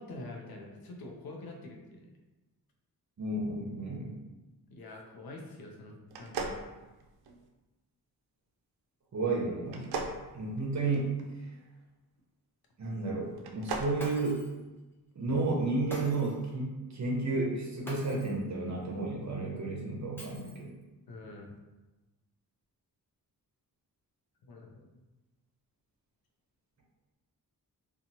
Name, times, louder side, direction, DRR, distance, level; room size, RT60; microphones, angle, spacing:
voice 1, 0.0-2.2 4.7-6.6 21.1-21.5 24.5-24.9, left 2 dB, 70° left, 1 dB, 0.7 m, -46 dB
voice 2, 3.2-4.1 9.1-10.1 10.3-11.2 12.8-14.4 15.2-20.7, right 3 dB, 50° right, -2 dB, 0.8 m, -32 dB
sound 1, 6.1-7.5 9.7-11.2 13.3-14.0, right 4 dB, 75° right, 0.5 m, -38 dB
Shatter, 14.0-14.6 15.9-16.5 17.9-18.4 20.2-20.8, equal, 5° left, 0.6 m, -45 dB
2.9 x 2.4 x 2.7 m, 1.1 s
cardioid pair, 75°, 38 cm